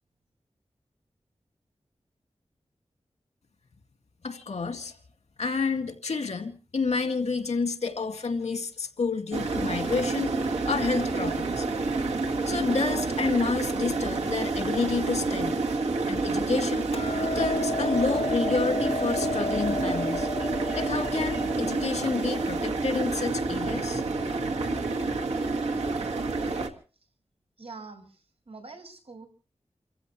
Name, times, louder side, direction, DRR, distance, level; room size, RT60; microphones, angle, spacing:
voice 1, 4.2-4.9 5.4-10.4 10.7-11.7 12.4-15.6 16.1-16.9 17.2-24.5, left 4 dB, 85° left, 2.1 m, -29 dB
sound 1, 9.3-26.7, right 3 dB, 80° right, 2.0 m, -29 dB
Hammer, 16.9-23.2, left 2 dB, 65° left, 1.0 m, -33 dB
voice 2, 27.6-29.3, right 3 dB, 65° right, 5.6 m, -45 dB
29.0 x 15.5 x 3.1 m
wide cardioid pair, 95°, 11 cm